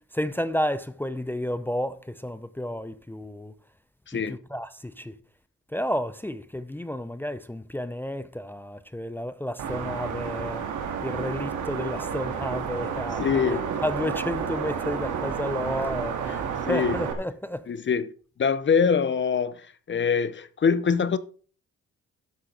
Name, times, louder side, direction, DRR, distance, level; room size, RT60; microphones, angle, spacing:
voice 1, 0.0-3.5 4.1-5.2 5.7-10.7 11.0-13.6 13.8-17.7, equal, 5° left, 0.6 m, -31 dB
voice 2, 4.1-4.4 13.2-13.6 16.7-17.0 17.7-18.1 18.4-21.2, left 6 dB, 40° left, 0.8 m, -24 dB
sound 1, 9.6-17.1, right 7 dB, 75° right, 2.2 m, -31 dB
12.0 x 8.0 x 3.9 m
cardioid pair, 90°, 30 cm